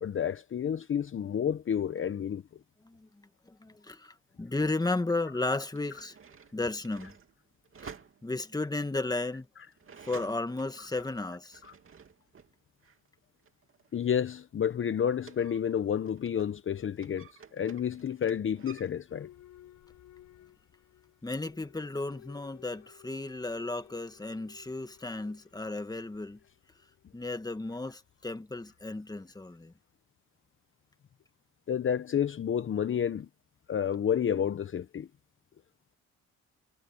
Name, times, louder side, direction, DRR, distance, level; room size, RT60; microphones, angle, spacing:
voice 1, 0.0-2.4 13.9-19.3 31.7-33.3 33.7-35.1, left 8 dB, 40° left, 0.9 m, -30 dB
voice 2, 2.8-6.1 6.5-7.1 7.8-7.9 8.2-9.5 10.0-11.6 21.2-26.4 27.1-29.7, left 2 dB, 15° left, 1.8 m, -34 dB
sound 1, 5.7-12.5 12.8-16.6 16.9-18.9, right 6 dB, 45° right, 2.7 m, -52 dB
Boat Water vehicle / Alarm, 19.1-29.7, left 12 dB, 75° left, 4.4 m, -58 dB
cardioid pair, 90°, 30 cm